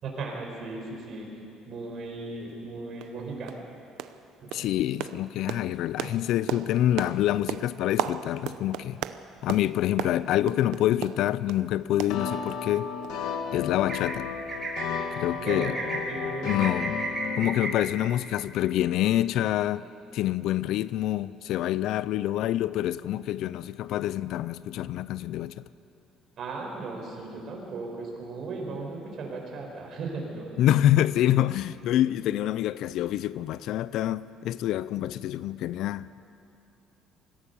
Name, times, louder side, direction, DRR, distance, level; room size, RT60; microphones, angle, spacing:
voice 1, 0.0-1.3 1.7-3.5 4.4-4.6 15.3-16.6 26.4-30.5 31.9-32.1, right 3 dB, 45° right, 4.9 m, -36 dB
sound 1, 2.5-2.6 3.0-3.2 3.5-3.7 4.0-4.2 4.5-11.6 12.0-12.8 13.0-13.2 13.5-13.6, right 12 dB, 80° right, 0.7 m, -36 dB
voice 2, 4.5-9.0 9.4-12.9 13.5-14.3 15.2-15.8 16.4-17.0 17.4-19.8 20.1-25.6 30.6-36.2, left 13 dB, 65° left, 0.4 m, -26 dB
sound 2, 12.1-17.4, left 6 dB, 85° left, 2.0 m, -33 dB
sound 3, 13.9-14.1 14.5-14.8 15.4-16.0 16.4-17.7, right 3 dB, 25° right, 4.6 m, -33 dB
24.5 x 16.0 x 6.9 m
cardioid pair, 150°, 0 cm